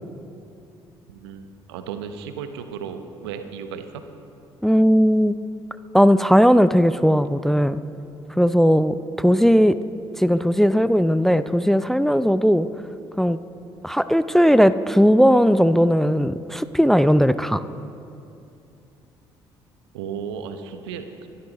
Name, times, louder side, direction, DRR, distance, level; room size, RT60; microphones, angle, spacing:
voice 1, 1.1-4.0 19.9-21.3, right 7 dB, 80° right, 8 dB, 0.9 m, -34 dB
voice 2, 4.6-5.3 5.9-7.8 8.4-9.8 10.2-12.7 13.2-13.4 13.8-17.6, equal, ahead, 14 dB, 0.5 m, -17 dB
26.0 x 12.5 x 3.0 m, 2.6 s
hypercardioid pair, 50°, 13 cm